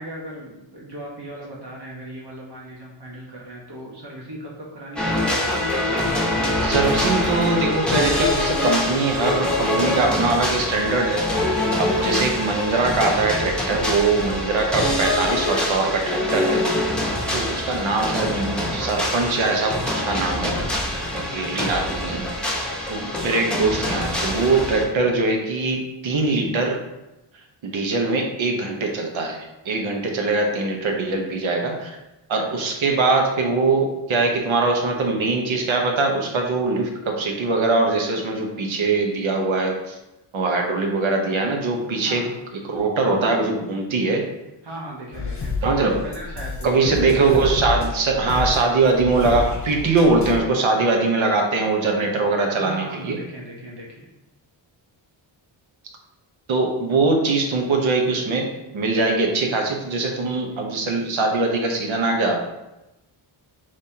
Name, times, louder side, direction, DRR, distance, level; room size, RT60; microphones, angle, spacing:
voice 1, 0.0-5.6 17.1-17.4 21.1-21.4 42.1-42.4 44.6-45.6 45.8-47.0 52.6-54.1, right 1 dB, 55° right, -4 dB, 1.2 m, -38 dB
sound 1, 5.0-24.8, left 1 dB, ahead, 1.0 m, -24 dB
voice 2, 6.6-11.2 11.8-16.6 17.3-20.5 21.1-22.3 22.9-26.8 27.6-32.0 32.3-40.0 40.3-42.2 42.5-44.2 45.6-46.0 46.6-53.2 56.5-62.4, right 3 dB, 70° right, 2 dB, 1.0 m, -22 dB
sound 2, 45.1-50.4, left 4 dB, 35° left, 1.0 m, -29 dB
5.3 x 3.4 x 2.8 m, 0.96 s
cardioid pair, 100°, 48 cm